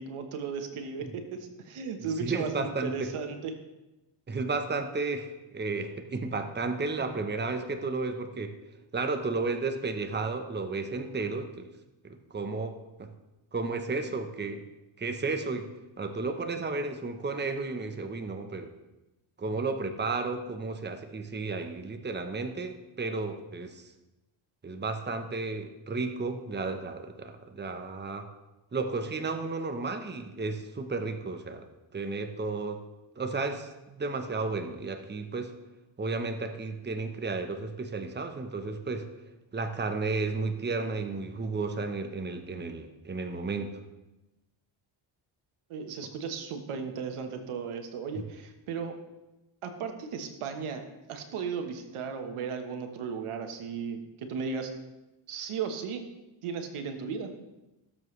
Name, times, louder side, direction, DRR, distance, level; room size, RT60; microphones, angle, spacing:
voice 1, 0.0-3.5 45.7-49.0 49.6-50.8 51.1-54.7 55.3-56.0 56.4-57.3, right 6 dB, 85° right, 6 dB, 1.4 m, -35 dB
voice 2, 2.2-3.1 4.3-8.5 8.9-11.7 12.0-13.1 13.5-14.6 15.0-15.7 16.0-18.7 19.4-23.8 24.6-28.3 28.7-31.6 31.9-32.8 33.2-35.5 36.0-39.1 39.5-43.7, right 3 dB, 20° right, 6 dB, 1.0 m, -33 dB
17.5 x 7.6 x 3.3 m, 1.0 s
cardioid pair, 95°, 49 cm